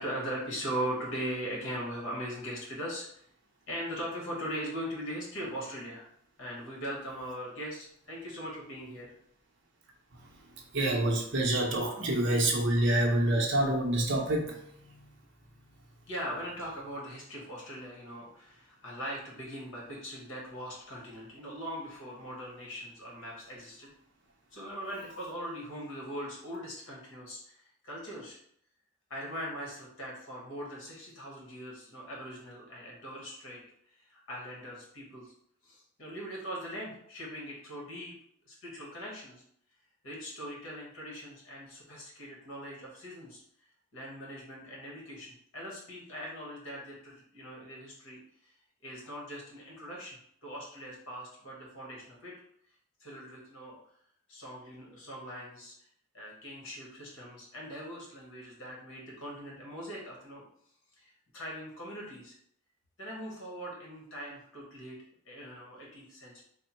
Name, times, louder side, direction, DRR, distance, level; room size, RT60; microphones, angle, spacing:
voice 1, 0.0-3.2 3.7-6.1 6.4-9.1 16.1-23.9 24.5-28.4 29.1-33.6 34.0-35.3 35.6-38.1 38.4-39.4 40.0-43.4 43.9-48.2 48.8-52.3 53.0-53.8 54.3-55.7 56.1-60.4 61.0-62.4 63.0-65.0 65.2-66.4, equal, 60° left, -4 dB, 1.4 m, -40 dB
voice 2, 10.7-14.6, right 1 dB, 55° right, 0 dB, 0.7 m, -27 dB
3.4 x 2.1 x 4.3 m, 0.68 s
head